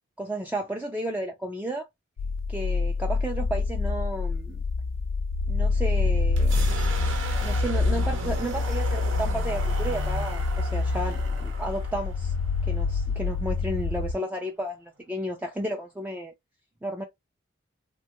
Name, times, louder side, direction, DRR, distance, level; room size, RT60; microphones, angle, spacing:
voice 1, 0.2-1.9 2.5-4.6 5.5-6.6 7.4-12.3 12.6-16.3 16.8-17.0, right 1 dB, 10° right, 0.3 m, -33 dB
sound 1, 2.2-14.1, left 3 dB, 80° left, 0.3 m, -26 dB
sound 2, 6.3-14.0, right 2 dB, 80° right, 0.8 m, -36 dB
3.0 x 2.3 x 2.8 m
head